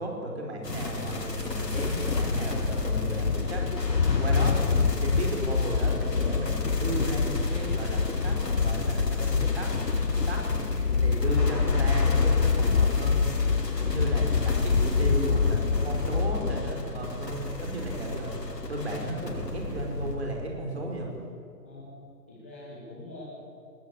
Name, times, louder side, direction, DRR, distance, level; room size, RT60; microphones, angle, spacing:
voice 1, 0.0-3.6 3.9-9.7 10.3-13.3 13.8-18.3 18.7-21.1, right 1 dB, 40° right, 1 dB, 5.1 m, -35 dB
sound 1, 0.6-20.2, left 1 dB, 75° left, 5.7 m, -35 dB
sound 2, 1.7-16.7, left 5 dB, 50° left, 0.7 m, -26 dB
voice 2, 21.6-23.2, left 2 dB, 10° left, -9 dB, 1.4 m, -45 dB
19.5 x 16.0 x 9.8 m, 2.3 s
figure-of-eight pair, 170°, 49 cm